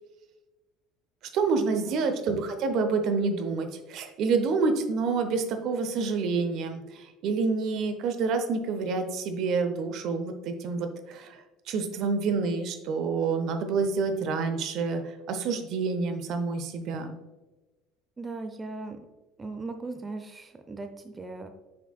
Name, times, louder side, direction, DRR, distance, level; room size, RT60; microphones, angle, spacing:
voice 1, 1.3-11.4 11.7-15.0 15.3-17.2, right 4 dB, 55° right, 7 dB, 0.8 m, -28 dB
voice 2, 18.2-19.0 19.4-21.5, right 3 dB, 20° right, 7 dB, 0.6 m, -38 dB
7.6 x 5.8 x 2.3 m, 1.1 s
figure-of-eight pair, 65°, 0 cm